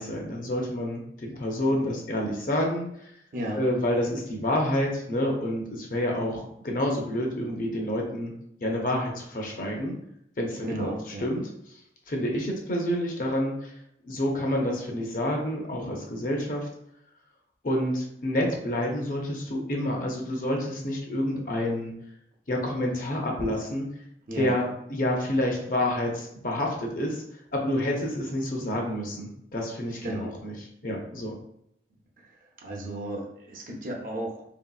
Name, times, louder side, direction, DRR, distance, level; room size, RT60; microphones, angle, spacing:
voice 1, 0.0-2.9 3.6-8.3 8.6-9.9 10.4-10.9 11.2-11.5 12.1-13.7 14.0-16.7 17.6-21.9 22.5-23.9 24.3-27.2 27.5-30.5 30.8-31.3, left 1 dB, 50° left, 0 dB, 0.6 m, -28 dB
voice 2, 3.3-3.6 10.6-11.3 24.3-24.5 30.0-30.3 32.2-34.4, right 1 dB, 50° right, -1 dB, 0.6 m, -34 dB
3.0 x 2.7 x 2.3 m, 0.74 s
head